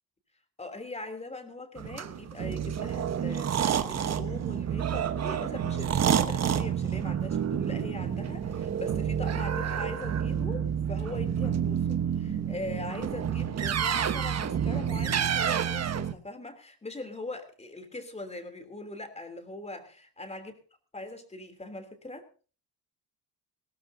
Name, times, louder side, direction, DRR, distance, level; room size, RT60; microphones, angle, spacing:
voice 1, 0.6-20.5 20.9-22.3, left 2 dB, 15° left, 6 dB, 3.1 m, -41 dB
sound 1, 1.8-16.1, right 8 dB, 45° right, 1.2 m, -29 dB
sound 2, 7.2-14.9, right 1 dB, 10° right, 3.3 m, -45 dB
20.0 x 17.0 x 2.7 m, 0.37 s
cardioid pair, 110°, 38 cm